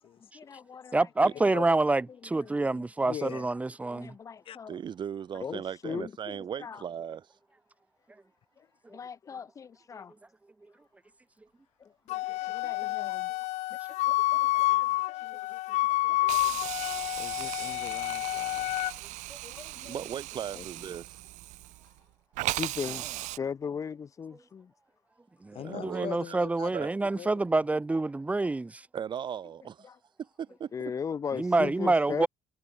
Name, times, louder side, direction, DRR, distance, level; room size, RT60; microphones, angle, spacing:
voice 1, 0.3-0.9 2.4-2.8 3.9-4.8 5.4-6.8 8.9-10.1 11.8-13.3 14.4-14.7 15.1-15.2 16.0-16.5 19.4-19.9 20.5-20.6 22.4-23.1 23.4-24.7 29.8-30.0 30.7-32.3, left 6 dB, 25° left, 0.8 m, -38 dB
voice 2, 0.9-4.1 15.3-15.4 16.2-16.4 19.3-19.4 25.4-28.9 31.3-32.3, right 2 dB, 10° right, 1.2 m, -27 dB
voice 3, 3.0-3.5 4.5-4.6 17.1-18.8 25.5-26.7 27.2-27.3, left 11 dB, 45° left, 3.6 m, -41 dB
voice 4, 4.7-7.3 19.8-21.2 25.6-26.4 26.7-26.9 28.9-29.9 30.2-30.7, right 8 dB, 40° right, 4.9 m, -37 dB
Wind instrument woodwind instrument, 12.1-18.9, left 18 dB, 70° left, 0.7 m, -29 dB
Hiss, 16.3-22.0 22.4-23.4, right 20 dB, 75° right, 2.9 m, -38 dB
cardioid pair, 140°, 12 cm